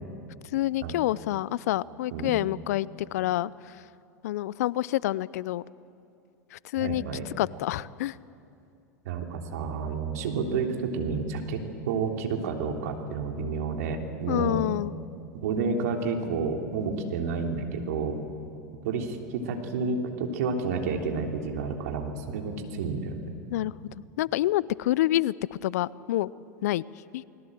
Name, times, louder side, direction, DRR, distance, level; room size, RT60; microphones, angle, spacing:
voice 1, 0.5-3.5 4.2-5.6 6.5-7.0 7.4-8.2 14.3-14.9 23.5-23.7 24.2-26.3 26.6-26.8 27.1-27.2, left 15 dB, 65° left, 22 dB, 0.5 m, -27 dB
voice 2, 6.8-7.2 9.0-14.6 15.3-18.2 18.8-23.3, right 4 dB, 65° right, 3 dB, 3.4 m, -30 dB
29.5 x 21.0 x 7.7 m, 2.6 s
hypercardioid pair, 90°, 9 cm